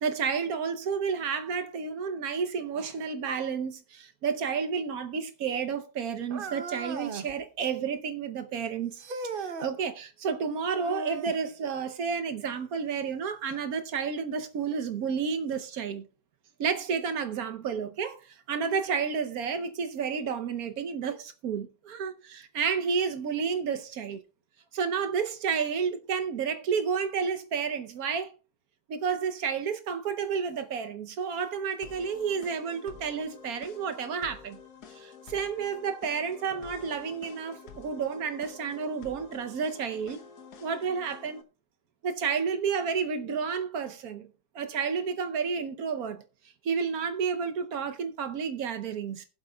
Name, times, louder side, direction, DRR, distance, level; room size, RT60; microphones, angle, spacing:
voice 1, 0.0-9.0 9.4-16.0 16.6-24.2 24.7-28.3 28.9-34.6 34.9-40.2 40.6-41.4 42.0-44.3 44.5-46.2 46.6-49.3, right 6 dB, 65° right, 1.2 m, -31 dB
sound 1, 6.3-7.3 9.0-9.7 10.7-11.4 13.5-13.6 14.4-14.5 15.5-15.6, right 3 dB, 45° right, 0.7 m, -37 dB
sound 2, 31.8-41.4, left 6 dB, 65° left, 1.5 m, -49 dB
20.0 x 7.8 x 2.3 m
omnidirectional pair, 1.8 m